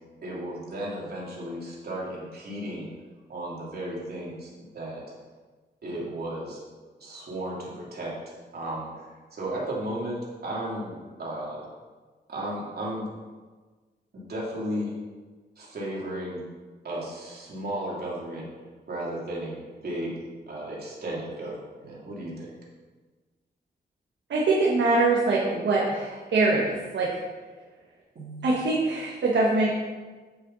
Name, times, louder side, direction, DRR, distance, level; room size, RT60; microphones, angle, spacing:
voice 1, 0.2-2.9 3.3-5.0 5.8-6.6 7.0-11.7 12.3-13.1 14.1-14.9 15.6-16.4 16.8-18.4 18.9-20.1 20.5-22.5 28.1-28.5, right 1 dB, 60° right, -5 dB, 3.0 m, -34 dB
voice 2, 24.3-27.2 28.4-29.8, right 3 dB, 80° right, -4 dB, 1.5 m, -23 dB
8.8 x 7.9 x 4.1 m, 1.4 s
wide cardioid pair, 105°, 18 cm